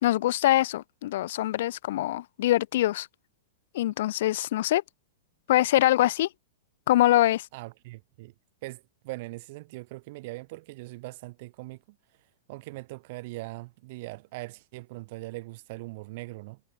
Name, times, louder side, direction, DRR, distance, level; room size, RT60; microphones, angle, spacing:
voice 1, 0.0-3.1 3.7-4.8 5.5-6.3 6.9-7.5, left 14 dB, 60° left, 0.6 m, -23 dB
voice 2, 7.5-8.3 8.6-12.0 12.5-16.6, right 22 dB, 55° right, 1.7 m, -41 dB
hypercardioid pair, 110°, 0 cm